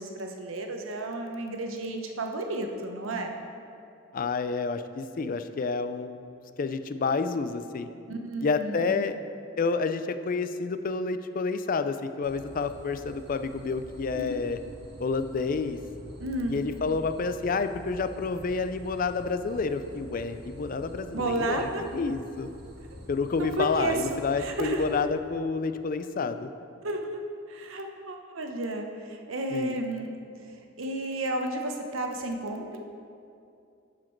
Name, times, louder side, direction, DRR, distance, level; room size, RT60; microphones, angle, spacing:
voice 1, 0.0-3.4 8.1-9.1 14.1-14.3 16.2-16.6 21.1-21.9 23.4-24.0 24.4-24.9 26.8-27.2 27.5-30.1 30.8-32.8, right 2 dB, 90° right, 4 dB, 0.9 m, -32 dB
voice 2, 4.1-6.2 6.6-7.9 8.4-9.2 9.6-14.6 15.0-15.8 16.5-22.5 23.1-26.5 29.5-29.8, left 4 dB, 45° left, 10 dB, 0.4 m, -29 dB
sound 1, 12.2-25.0, equal, 55° right, 1.2 m, -47 dB
11.5 x 5.0 x 4.5 m, 2.5 s
head